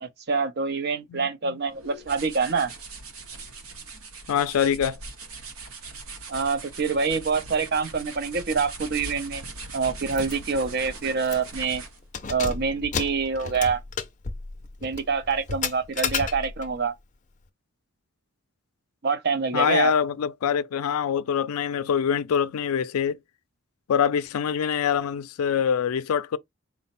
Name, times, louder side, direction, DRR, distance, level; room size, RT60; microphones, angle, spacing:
voice 1, 0.0-2.7 6.3-9.4 9.7-11.8 12.3-13.8 14.8-16.9 19.0-19.9, right 5 dB, 50° right, 0.5 m, -26 dB
voice 2, 1.1-1.6 4.3-5.0 19.5-23.2 23.9-26.4, left 7 dB, 90° left, 0.4 m, -24 dB
sound 1, 1.7-12.1, right 3 dB, 80° right, 0.7 m, -40 dB
Keys jangling, 10.1-10.3 10.7-10.8 11.2-11.6 12.0-16.8, left 5 dB, 35° left, 0.5 m, -32 dB
4.1 x 2.0 x 4.1 m
head